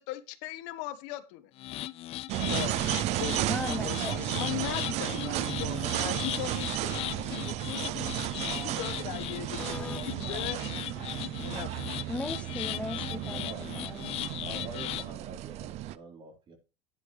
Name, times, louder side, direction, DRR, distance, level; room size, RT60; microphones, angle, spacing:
voice 1, 0.0-1.5 2.4-2.8 3.2-10.6 11.4-12.0, left 14 dB, 75° left, 1.3 m, -39 dB
sound 1, 1.6-15.1, left 15 dB, 45° left, 0.5 m, -38 dB
sound 2, 2.3-16.0, right 14 dB, 50° right, 0.6 m, -33 dB
voice 2, 3.5-4.1 9.6-10.0 12.1-14.2, left 2 dB, 10° left, 0.8 m, -37 dB
voice 3, 13.2-13.7 14.4-16.6, right 4 dB, 35° right, 4.2 m, -45 dB
11.0 x 10.0 x 3.3 m
supercardioid pair, 120°, 14 cm